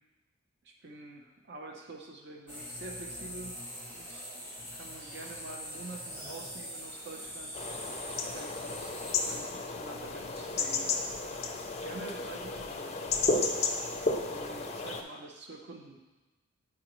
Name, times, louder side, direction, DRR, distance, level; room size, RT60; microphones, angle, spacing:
voice 1, 0.6-3.6 3.9-4.3 4.7-7.6 8.3-10.9 11.4-11.5 11.8-13.7 14.2-16.0, right 2 dB, 50° right, 1 dB, 0.6 m, -47 dB
sound 1, 2.5-9.4, equal, 25° right, 1.5 m, -43 dB
sound 2, 7.5-15.0, left 3 dB, 30° left, 0.5 m, -33 dB
9.2 x 4.9 x 3.0 m, 1.2 s
head